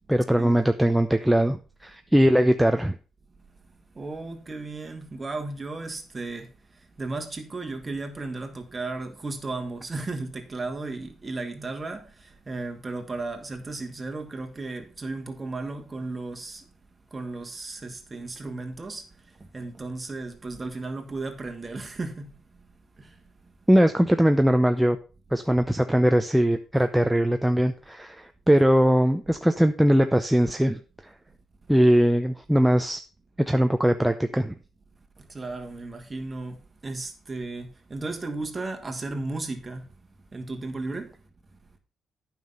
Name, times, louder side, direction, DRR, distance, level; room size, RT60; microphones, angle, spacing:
voice 1, 0.1-2.9 23.7-25.0 25.3-31.1 31.7-33.0 33.5-34.5, equal, 5° right, 0.6 m, -21 dB
voice 2, 4.0-6.5 7.0-16.7 17.1-19.0 19.4-22.3 23.0-23.2 35.2-39.8 40.3-41.1, right 3 dB, 25° right, 1.9 m, -35 dB
9.2 x 5.8 x 5.4 m
cardioid pair, 90°, 0 cm